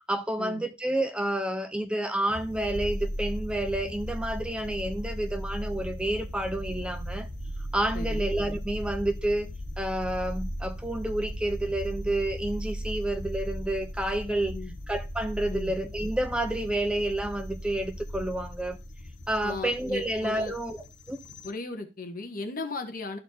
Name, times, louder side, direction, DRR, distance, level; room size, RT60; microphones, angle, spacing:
voice 1, 0.0-7.3 7.7-9.5 9.8-14.6 14.9-18.8 19.3-20.8 21.1-21.2, right 1 dB, 5° right, 0.5 m, -29 dB
sound 1, 2.3-21.5, equal, 75° left, 0.9 m, -37 dB
voice 2, 7.9-8.3 14.5-14.7 15.5-15.7 19.4-20.5 21.4-23.2, left 2 dB, 55° left, 1.3 m, -36 dB
13.0 x 4.4 x 2.7 m
head